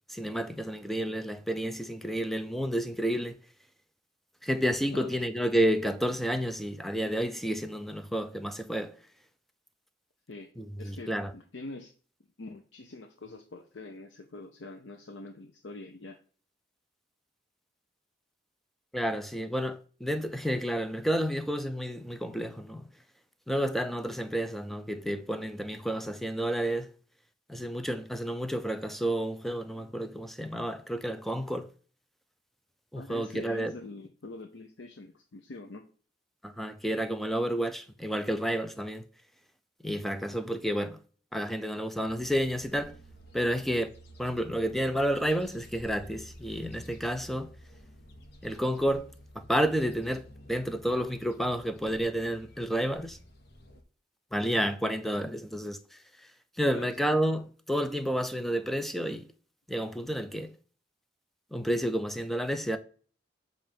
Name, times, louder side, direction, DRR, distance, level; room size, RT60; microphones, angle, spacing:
voice 1, 0.1-3.4 4.4-8.9 10.6-11.3 18.9-22.9 23.5-26.9 27.5-31.7 32.9-33.7 36.4-39.0 39.8-41.0 41.3-43.0 43.3-43.9 44.2-47.5 48.4-53.2 54.3-56.3 56.6-59.3 59.7-60.5 61.5-62.8, equal, ahead, 0.5 m, -30 dB
voice 2, 10.8-11.9 12.4-16.2 32.9-35.8 56.7-56.9, left 2 dB, 90° left, 0.7 m, -44 dB
sound 1, 42.1-53.8, equal, 65° left, 1.0 m, -51 dB
7.6 x 2.6 x 5.1 m
head